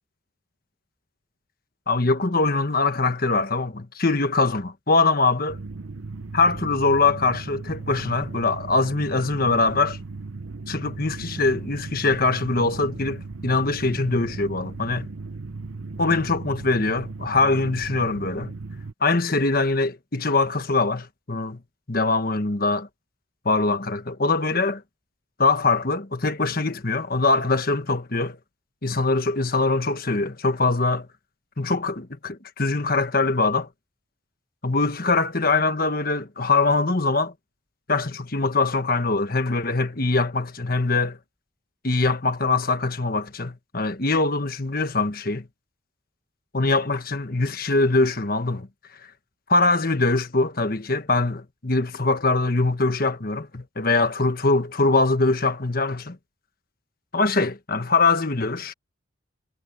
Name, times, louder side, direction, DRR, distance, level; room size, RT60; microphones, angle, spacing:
voice 1, 1.9-5.6 6.3-10.0 10.7-15.1 16.0-18.5 19.0-21.6 21.9-22.9 23.4-24.8 25.4-28.4 28.8-31.1 31.6-33.7 34.6-37.3 37.9-41.2 41.8-45.5 46.5-48.7 49.5-56.2 57.1-58.7, left 3 dB, 45° left, 1.4 m, -23 dB
sound 1, 5.5-18.9, right 3 dB, 75° right, 0.9 m, -36 dB
head